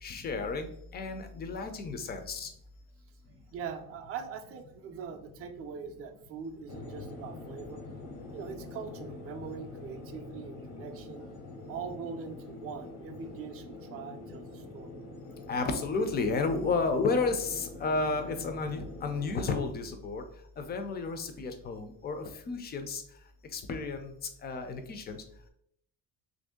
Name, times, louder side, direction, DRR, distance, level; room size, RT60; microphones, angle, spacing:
voice 1, 0.0-2.5 15.5-20.2 20.6-23.0 23.5-24.1 24.4-25.2, left 4 dB, 25° left, 7 dB, 0.3 m, -32 dB
voice 2, 3.5-7.8 8.3-11.3 11.7-14.9, right 6 dB, 40° right, 5 dB, 0.4 m, -42 dB
sound 1, 6.7-19.5, left 2 dB, 80° left, 0.9 m, -45 dB
2.9 x 2.6 x 3.5 m, 0.71 s
cardioid pair, 155°, 38 cm